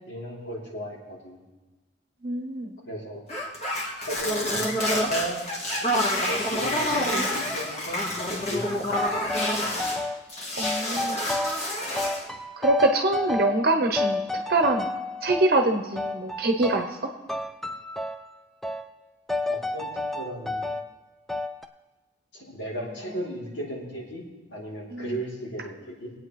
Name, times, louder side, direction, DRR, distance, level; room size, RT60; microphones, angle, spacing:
voice 1, 0.1-1.5 2.8-3.2 4.0-5.4 6.2-9.1 19.5-20.7 22.3-24.2 24.5-26.1, right 1 dB, 85° left, -4 dB, 3.1 m, -35 dB
voice 2, 2.2-2.7 10.6-11.2 12.6-14.2 14.5-14.9 15.2-17.1 24.9-25.2, right 2 dB, 55° right, 4 dB, 0.8 m, -24 dB
sound 1, 3.3-10.0 10.3-12.3, left 1 dB, 35° left, 1.6 m, -28 dB
sound 2, 8.9-10.2 10.6-11.7 12.0-13.7 14.0-15.5 16.0-17.0 17.3-18.3 18.6-18.9 19.3-20.9 21.3-21.7, left 2 dB, ahead, 0.4 m, -31 dB
21.5 x 8.6 x 3.2 m, 1.2 s
head